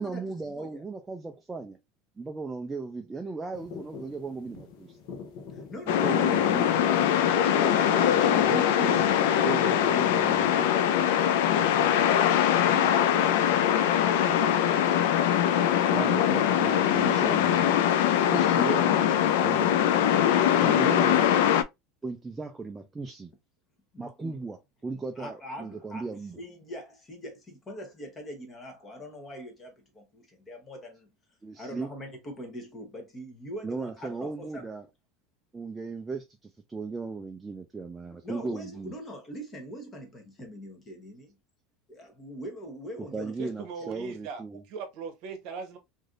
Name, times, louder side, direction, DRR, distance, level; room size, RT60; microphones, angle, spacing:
voice 1, 0.0-1.8 2.2-5.0 5.9-6.9 7.4-9.0 9.4-11.1 15.9-17.8 18.2-20.2 20.6-21.2 22.0-23.3 24.0-26.4 31.4-31.9 33.6-34.9 35.5-38.9 43.0-44.6, right 4 dB, 10° right, 0.3 m, -37 dB
sound 1, 3.5-10.4, left 5 dB, 55° left, 0.7 m, -42 dB
voice 2, 5.5-6.4 23.9-24.4 24.9-26.0 26.4-31.1 31.6-34.7 38.2-41.3 41.9-43.5, equal, 20° left, 0.8 m, -42 dB
sound 2, 5.9-21.6, left 10 dB, 80° left, 0.3 m, -22 dB
voice 3, 43.4-45.8, right 5 dB, 50° right, 0.8 m, -39 dB
3.2 x 2.6 x 2.4 m
cardioid pair, 170°, 0 cm